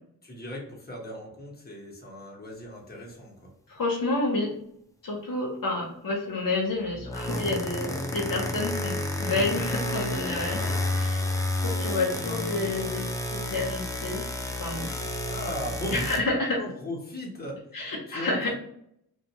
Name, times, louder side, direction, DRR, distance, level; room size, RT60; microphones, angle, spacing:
voice 1, 0.2-3.5 15.3-16.1 16.6-17.6 18.1-18.5, equal, 25° left, -3 dB, 1.2 m, -37 dB
voice 2, 3.7-4.5 5.0-11.3 11.6-14.2 14.6-14.9 15.9-16.6 17.7-18.5, left 2 dB, 60° left, -2 dB, 0.9 m, -29 dB
sound 1, 6.9-16.2, left 1 dB, 10° left, 0.5 m, -30 dB
2.6 x 2.5 x 2.9 m, 0.73 s
cardioid pair, 60°, 38 cm